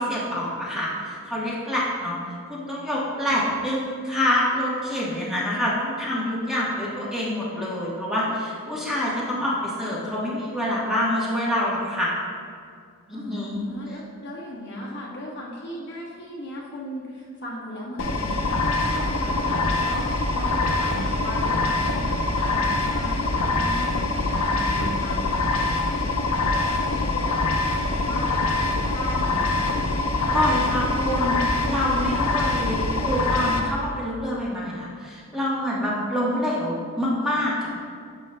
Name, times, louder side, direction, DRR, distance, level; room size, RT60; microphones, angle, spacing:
voice 1, 0.0-2.2 2.5-12.1 13.1-13.6 30.3-37.8, left 1 dB, ahead, -7 dB, 1.2 m, -26 dB
voice 2, 13.1-25.2 25.5-26.0 26.4-27.3 27.8-28.6 28.9-29.7 35.7-35.8, equal, 55° left, -4 dB, 1.2 m, -37 dB
sound 1, 18.0-33.6, left 2 dB, 80° left, 0.7 m, -24 dB
9.6 x 6.3 x 2.2 m, 2.2 s
head